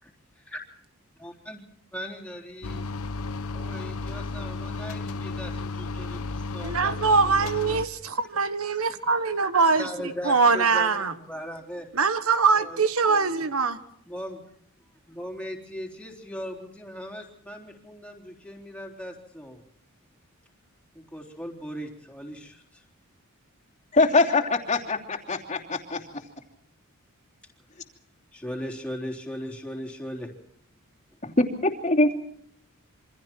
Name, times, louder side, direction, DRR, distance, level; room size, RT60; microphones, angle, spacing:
voice 1, 1.2-1.6 1.9-2.9 3.5-7.0 7.2-7.8 9.8-11.9 12.6-13.4 14.1-14.4 15.1-19.6 20.9-22.8 28.3-30.3, equal, 5° left, 1 dB, 3.8 m, -38 dB
sound 1, 2.6-7.9, left 3 dB, 90° left, 1.0 m, -33 dB
voice 2, 6.6-11.1 11.9-13.8, right 4 dB, 75° right, 11 dB, 1.4 m, -23 dB
voice 3, 23.9-26.0 31.2-32.1, left 2 dB, 35° left, 0 dB, 2.9 m, -23 dB
27.5 x 25.0 x 4.5 m, 0.66 s
head